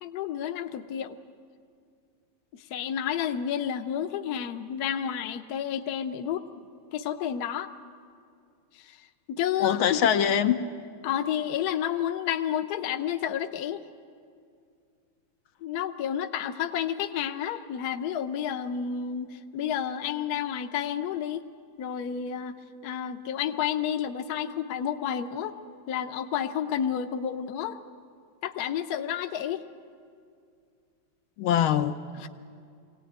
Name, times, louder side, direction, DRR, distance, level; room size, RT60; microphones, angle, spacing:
voice 1, 0.0-1.2 2.5-6.4 6.9-7.7 8.7-10.0 11.0-13.8 15.6-21.4 21.8-22.5 22.8-25.6 25.9-27.8 28.4-29.6 32.1-32.3, left 9 dB, 60° left, 1.2 m, -30 dB
voice 2, 9.6-10.6 31.4-32.3, left 9 dB, 75° left, 1.6 m, -23 dB
23.0 x 17.5 x 9.3 m
omnidirectional pair, 2.3 m